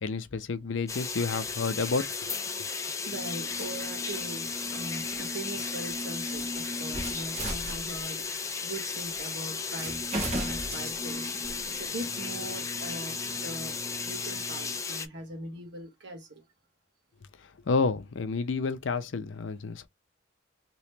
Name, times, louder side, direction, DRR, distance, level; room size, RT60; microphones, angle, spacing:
voice 1, 0.0-2.3 17.4-19.9, left 4 dB, 70° left, 0.5 m, -30 dB
sound 1, 0.9-15.1, left 5 dB, 15° left, 0.4 m, -35 dB
sound 2, 3.1-8.3 9.2-9.3 9.7-14.8, right 1 dB, 35° right, 1.2 m, -39 dB
voice 2, 3.1-13.8 14.0-16.4, right 1 dB, 65° right, 1.3 m, -41 dB
3.0 x 2.8 x 3.2 m
head